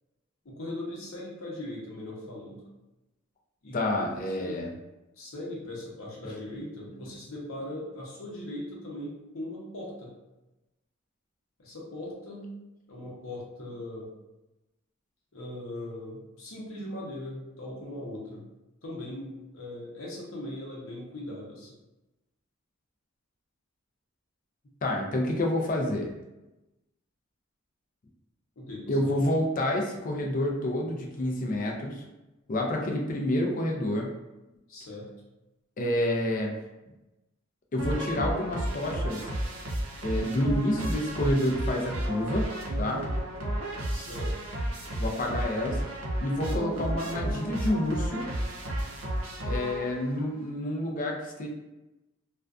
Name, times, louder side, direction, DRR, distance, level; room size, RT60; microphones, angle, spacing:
voice 1, 0.4-2.6 3.6-4.6 5.2-10.1 11.6-12.5 12.9-14.1 15.3-18.5 18.8-21.8 28.6-29.1 34.7-35.1 43.9-44.3, left 1 dB, 70° left, -3 dB, 0.8 m, -39 dB
voice 2, 3.7-4.7 24.8-26.1 28.9-32.0 32.5-34.1 35.8-36.5 37.7-39.2 40.0-42.5 42.8-43.0 45.0-45.8 46.2-48.2 49.5-51.5, left 1 dB, 40° left, 0 dB, 0.4 m, -28 dB
sound 1, 37.8-50.2, right 1 dB, 70° right, 0.5 m, -32 dB
2.4 x 2.2 x 2.4 m, 1.0 s
head